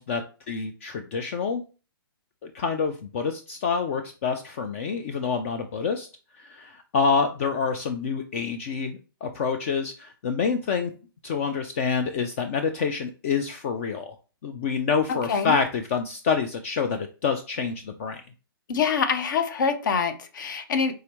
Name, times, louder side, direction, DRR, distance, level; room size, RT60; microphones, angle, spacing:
voice 1, 0.0-1.6 2.4-6.1 6.4-10.9 11.2-14.1 14.4-18.2, left 5 dB, 35° left, 7 dB, 0.4 m, -27 dB
voice 2, 15.1-15.6 18.7-21.0, left 6 dB, 55° left, 9 dB, 0.8 m, -25 dB
4.8 x 3.5 x 3.0 m, 0.35 s
hypercardioid pair, 155°, 13 cm